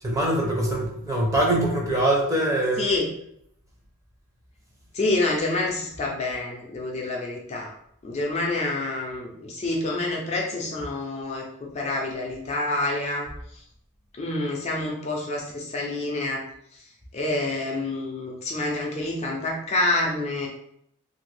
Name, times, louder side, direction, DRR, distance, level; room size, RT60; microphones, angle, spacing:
voice 1, 0.0-2.9, right 1 dB, 15° right, -2 dB, 0.6 m, -23 dB
voice 2, 2.8-3.1 4.9-7.7 8.0-13.3 14.2-16.4 17.1-20.5, left 2 dB, 30° left, -2 dB, 0.4 m, -27 dB
2.8 x 2.6 x 3.2 m, 0.71 s
head